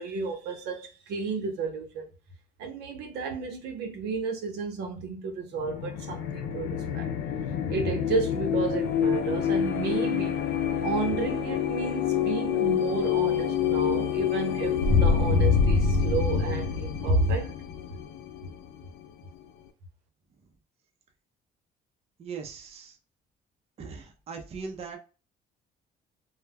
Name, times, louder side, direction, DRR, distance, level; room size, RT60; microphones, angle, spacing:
voice 1, 0.0-2.1 2.6-7.1 7.7-10.4 10.8-17.5, right 3 dB, 75° right, 0.7 m, -31 dB
sound 1, 5.6-19.0, left 6 dB, 80° left, 0.4 m, -26 dB
voice 2, 22.2-23.0 23.8-25.0, right 5 dB, 35° right, 0.5 m, -39 dB
2.1 x 2.1 x 3.3 m
cardioid pair, 110°, 17 cm